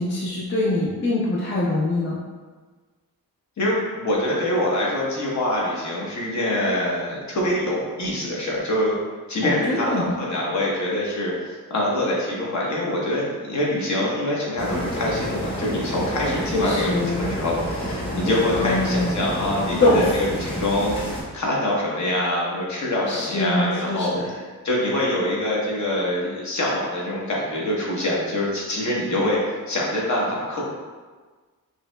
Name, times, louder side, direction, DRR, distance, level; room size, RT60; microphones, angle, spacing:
voice 1, 0.0-2.2 9.4-10.1 16.5-17.3 18.6-19.3 19.7-20.0 23.1-24.2, left 2 dB, 30° left, -5 dB, 0.5 m, -23 dB
voice 2, 3.6-8.9 9.3-20.9 21.3-30.6, left 1 dB, 50° left, -4 dB, 1.0 m, -25 dB
sound 1, 14.6-21.2, equal, 15° left, 0.9 m, -29 dB
5.5 x 2.8 x 2.2 m, 1.4 s
wide cardioid pair, 170°, 35 cm